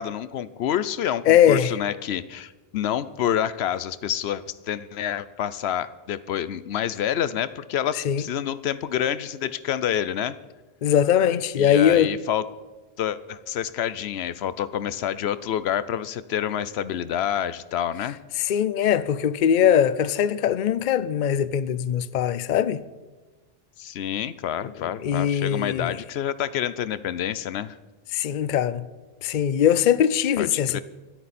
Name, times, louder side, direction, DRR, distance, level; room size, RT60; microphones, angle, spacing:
voice 1, 0.0-10.4 11.6-12.5 13.0-18.2 23.8-27.8 30.4-30.8, left 10 dB, 85° left, 0.9 m, -28 dB
voice 2, 1.3-1.7 8.0-8.2 10.8-12.1 18.4-22.8 25.0-26.0 28.1-28.9 29.2-30.8, left 9 dB, 55° left, 0.6 m, -21 dB
26.0 x 9.0 x 4.2 m
omnidirectional pair, 1.0 m